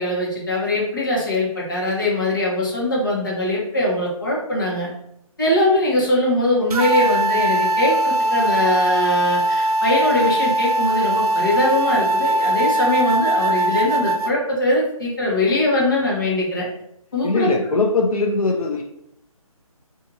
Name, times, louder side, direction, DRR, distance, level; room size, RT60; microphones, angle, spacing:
voice 1, 0.0-4.9 5.4-16.7 17.1-17.7, left 1 dB, 35° left, -4 dB, 1.0 m, -21 dB
sound 1, 6.7-14.3, right 1 dB, 90° right, 0.5 m, -20 dB
voice 2, 17.2-18.8, left 3 dB, 75° left, 1 dB, 0.6 m, -20 dB
2.7 x 2.5 x 4.0 m, 0.78 s
hypercardioid pair, 180°, 19 cm